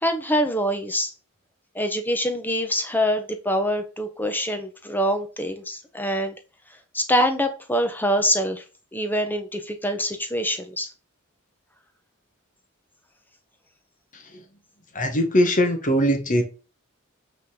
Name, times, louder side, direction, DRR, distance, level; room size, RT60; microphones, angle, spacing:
voice 1, 0.0-1.1 1.7-6.4 6.9-8.6 8.9-10.9, equal, 10° left, 1.1 m, -24 dB
voice 2, 14.9-16.4, equal, 40° left, 1.5 m, -21 dB
8.4 x 4.0 x 4.9 m
head